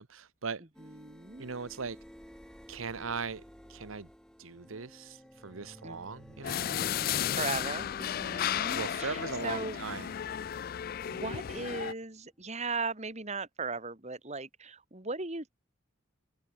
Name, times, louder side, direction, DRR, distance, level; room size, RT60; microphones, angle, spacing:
voice 1, 0.0-0.6 1.4-2.0 2.7-3.4 3.7-4.1 4.4-6.7 8.7-10.1, right 5 dB, 85° right, 1.1 m, -39 dB
sound 1, 0.7-12.3, equal, 5° left, 2.0 m, -54 dB
voice 2, 0.8-1.5 5.8-6.0 6.7-9.8 11.0-15.6, right 3 dB, 35° right, 2.2 m, -38 dB
sound 2, 6.4-11.9, left 10 dB, 45° left, 0.3 m, -34 dB
open air
head